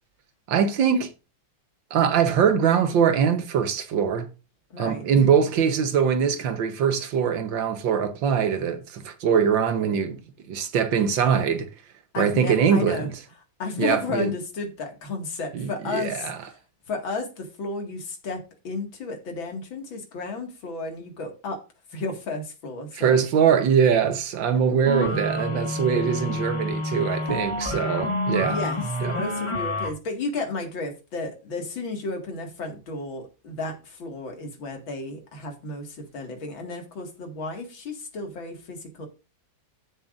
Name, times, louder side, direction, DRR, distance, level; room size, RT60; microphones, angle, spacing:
voice 1, 0.5-1.1 1.9-4.3 4.8-10.2 10.5-11.7 12.2-13.1 13.8-14.3 15.6-16.3 23.0-28.6 29.0-29.1, right 7 dB, 70° right, 1.7 m, -22 dB
voice 2, 4.7-5.1 12.1-13.1 13.6-16.6 16.9-21.6 21.9-23.2 28.5-39.1, left 3 dB, 70° left, 2.8 m, -33 dB
sound 1, 24.8-29.9, left 1 dB, 15° left, 1.3 m, -28 dB
14.0 x 7.3 x 2.6 m
omnidirectional pair, 2.2 m